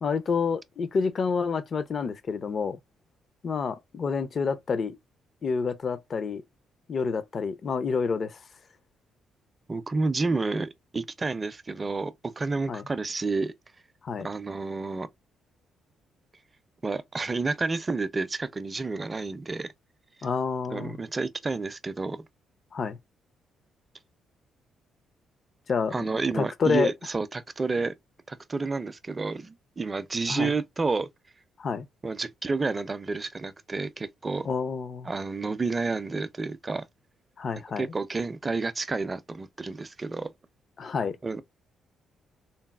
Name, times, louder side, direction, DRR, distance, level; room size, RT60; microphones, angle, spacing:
voice 1, 0.0-2.8 3.4-5.0 5.4-6.4 6.9-8.4 12.7-12.8 14.0-14.3 20.2-21.0 22.7-23.0 25.7-26.0 26.3-26.9 30.3-30.5 31.6-31.9 34.4-35.1 37.4-37.9 40.8-41.2, left 5 dB, 45° left, 0.4 m, -28 dB
voice 2, 9.7-13.5 14.2-15.1 16.8-19.7 20.7-22.2 25.9-27.9 28.3-31.1 32.0-34.5 35.0-36.9 37.8-40.3 41.2-41.4, right 3 dB, 25° right, 0.4 m, -30 dB
3.9 x 2.0 x 2.2 m
cardioid pair, 90°, 0 cm